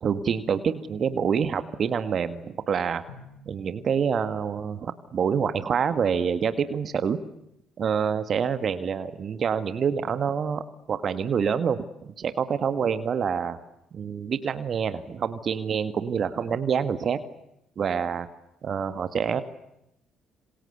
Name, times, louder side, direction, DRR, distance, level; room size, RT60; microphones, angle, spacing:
voice 1, 0.0-3.0 3.5-7.2 7.8-13.6 13.9-17.2 17.8-18.3 18.6-19.4, right 7 dB, 50° right, 11 dB, 1.9 m, -27 dB
Drum, 3.1-4.8, left 3 dB, 85° left, 2.7 m, -51 dB
27.5 x 26.5 x 8.1 m, 0.83 s
hypercardioid pair, 50°, 0 cm